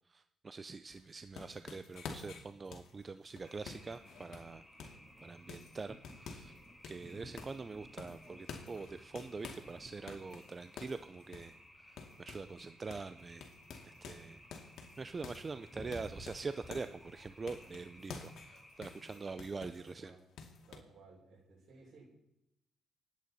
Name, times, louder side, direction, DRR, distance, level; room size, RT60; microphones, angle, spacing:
voice 1, 0.1-6.5 6.9-13.5 13.8-20.2, right 4 dB, 30° right, 11 dB, 0.5 m, -44 dB
sound 1, 0.9-5.1 5.5-6.6 6.8-7.7 8.0-9.7 10.1-12.6 12.9-13.1 13.4-17.0 17.5-19.9 20.4-20.8, left 5 dB, 70° left, 2.3 m, -50 dB
sound 2, 1.9-18.2, equal, 15° right, 3.3 m, -58 dB
sound 3, 3.4-19.4, equal, 5° left, 4.1 m, -60 dB
voice 2, 19.1-20.2 20.7-22.1, right 3 dB, 65° right, -1 dB, 6.1 m, -60 dB
28.0 x 9.4 x 4.2 m, 0.83 s
cardioid pair, 90°, 0 cm